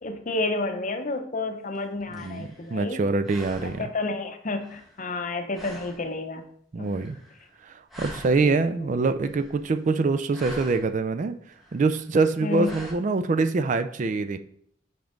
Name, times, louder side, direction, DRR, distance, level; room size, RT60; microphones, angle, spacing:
voice 1, 0.0-3.0 3.6-6.4 6.8-6.9 8.4-9.0 12.4-12.7, left 2 dB, 40° left, 7 dB, 0.6 m, -30 dB
sound 1, 1.8-3.0 3.2-4.0 4.6-5.3 5.5-6.1 6.8-7.6 7.9-8.7 9.1-9.8 10.2-11.0 11.5-12.1 12.6-12.9, equal, ahead, 1.3 m, -45 dB
voice 2, 2.1-3.9 6.7-7.2 7.6-11.4 11.7-14.4, right 3 dB, 40° right, 10 dB, 0.3 m, -25 dB
5.8 x 5.3 x 3.8 m, 0.66 s
head